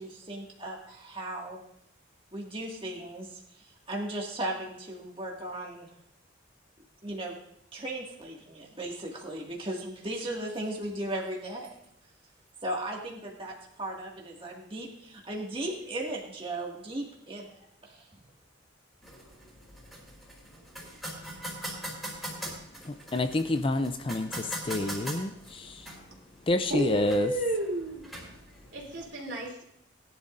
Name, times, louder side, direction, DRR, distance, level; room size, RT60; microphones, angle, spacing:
voice 1, 0.0-1.6 2.3-5.9 7.0-7.4 7.7-11.8 12.6-17.5 17.8-18.0, right 1 dB, 25° right, -2 dB, 2.0 m, -36 dB
sound 1, 19.0-29.0, right 1 dB, ahead, 3.7 m, -42 dB
voice 2, 22.8-25.9 26.5-27.3, left 2 dB, 25° left, 9 dB, 0.5 m, -28 dB
voice 3, 26.7-28.1 28.7-29.6, right 1 dB, 55° right, -1 dB, 3.2 m, -32 dB
20.0 x 11.5 x 2.6 m, 0.75 s
head